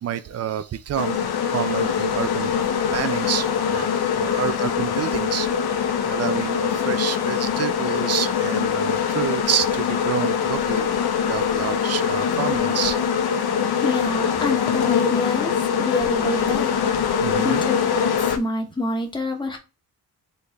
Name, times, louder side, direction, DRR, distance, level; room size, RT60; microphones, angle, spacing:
voice 1, 0.0-2.6 2.9-5.5 6.1-10.9 11.3-13.0 17.2-17.6, right 9 dB, 45° right, 0.4 m, -28 dB
sound 1, 1.0-18.4, left 7 dB, 75° left, 0.8 m, -23 dB
voice 2, 13.8-16.8 17.1-19.6, left 2 dB, 10° left, 0.9 m, -27 dB
4.5 x 3.2 x 3.4 m
wide cardioid pair, 140°, 38 cm